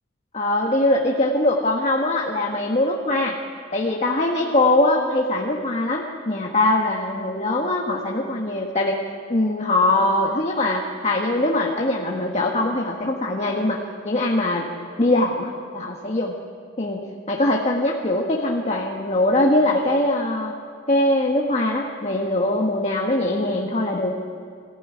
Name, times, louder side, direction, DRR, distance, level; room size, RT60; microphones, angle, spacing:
voice 1, 0.3-3.3 3.7-9.0 9.3-13.8 14.0-14.6 15.0-16.3 16.8-17.0 17.3-20.5 20.9-24.1, left 1 dB, 35° left, -1 dB, 1.5 m, -22 dB
21.5 x 15.0 x 9.8 m, 2.3 s
head